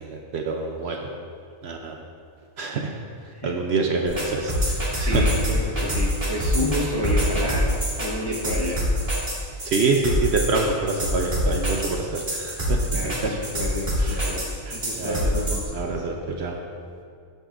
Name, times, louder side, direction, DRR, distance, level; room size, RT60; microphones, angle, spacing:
voice 1, 0.0-1.1 1.6-2.0 2.6-2.9 3.4-5.3 9.6-13.3 14.0-14.2 14.7-15.3 15.7-16.6, right 3 dB, 60° right, 2 dB, 0.8 m, -26 dB
sound 1, 4.1-15.6, equal, 40° right, 1.9 m, -25 dB
voice 2, 5.0-8.9 12.9-14.4 14.7-15.7, left 1 dB, 25° left, -3 dB, 0.6 m, -30 dB
14.0 x 5.3 x 2.5 m, 2.3 s
omnidirectional pair, 1.4 m